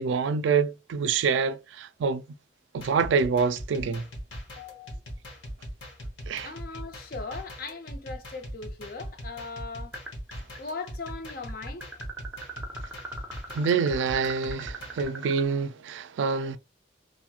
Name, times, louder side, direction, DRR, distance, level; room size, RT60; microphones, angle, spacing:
voice 1, 0.0-2.2 2.7-4.0 6.3-6.5 13.5-16.6, right 5 dB, 80° right, 0.3 m, -26 dB
sound 1, 2.8-15.0, equal, 85° left, 1.0 m, -40 dB
voice 2, 4.6-5.0 6.4-9.9 10.6-11.9, left 4 dB, 50° left, 0.5 m, -39 dB
sound 2, 9.9-10.6 10.8-15.4, right 3 dB, 5° right, 0.6 m, -40 dB
2.9 x 2.6 x 2.2 m
head